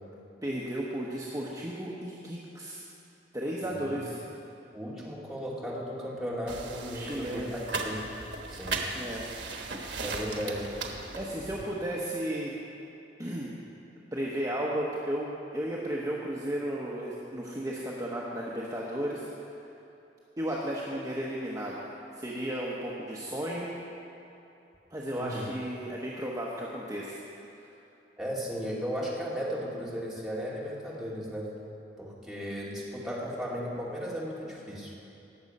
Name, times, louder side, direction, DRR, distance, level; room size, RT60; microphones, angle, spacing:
voice 1, 0.4-2.8 3.3-4.2 6.9-7.5 8.9-9.2 11.1-12.5 13.2-13.6 14.1-19.3 20.4-21.8 22.2-23.7 24.9-27.2, right 1 dB, 20° right, -5 dB, 1.0 m, -34 dB
voice 2, 3.6-4.0 4.7-7.6 7.8-8.0 8.5-8.8 10.0-10.7 25.1-25.4 28.2-31.5 32.0-34.9, equal, ahead, -7 dB, 2.3 m, -35 dB
sound 1, 6.5-11.6, right 3 dB, 80° right, 1.3 m, -37 dB
18.5 x 7.1 x 5.4 m, 2.9 s
head